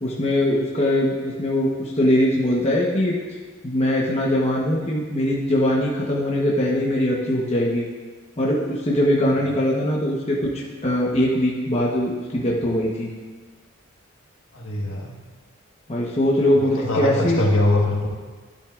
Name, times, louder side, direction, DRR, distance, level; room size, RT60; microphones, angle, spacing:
voice 1, 0.0-3.2 3.6-7.9 8.4-13.1 15.9-17.4, left 1 dB, 30° left, -4 dB, 1.0 m, -21 dB
voice 2, 14.5-15.2 16.5-18.1, left 1 dB, 70° left, -1 dB, 1.5 m, -22 dB
11.5 x 11.5 x 2.5 m, 1.4 s
head